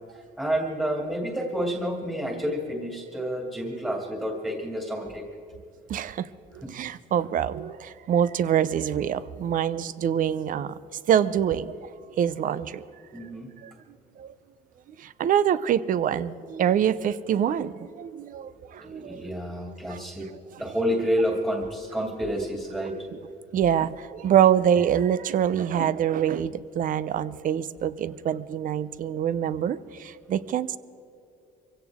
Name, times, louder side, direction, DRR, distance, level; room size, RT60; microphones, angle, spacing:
voice 1, 0.1-5.2 6.6-6.7 13.1-13.5 18.8-20.3 20.6-23.1, equal, 10° right, 1 dB, 2.5 m, -29 dB
voice 2, 5.9-6.3 6.5-10.8 11.1-11.9 12.2-12.8 13.1-13.3 13.6-13.7 14.2-14.3 15.0-19.3 19.9-20.0 20.3-20.4 23.5-30.8, right 9 dB, 55° right, 16 dB, 0.7 m, -25 dB
23.5 x 16.5 x 3.6 m, 2.7 s
cardioid pair, 110°, 17 cm